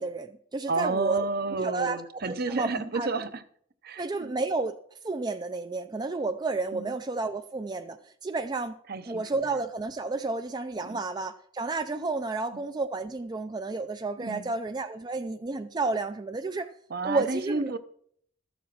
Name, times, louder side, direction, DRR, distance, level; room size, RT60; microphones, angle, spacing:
voice 1, 0.0-1.3 1.6-3.1 4.0-4.8 5.0-8.8 9.0-16.7 17.0-17.7, right 3 dB, 20° right, 8 dB, 0.4 m, -31 dB
voice 2, 0.7-3.4 3.8-4.3 6.7-6.9 8.9-9.2 10.8-11.0 14.2-14.5 16.9-17.8, right 3 dB, 50° right, 11 dB, 0.7 m, -31 dB
13.5 x 7.2 x 5.9 m, 0.64 s
head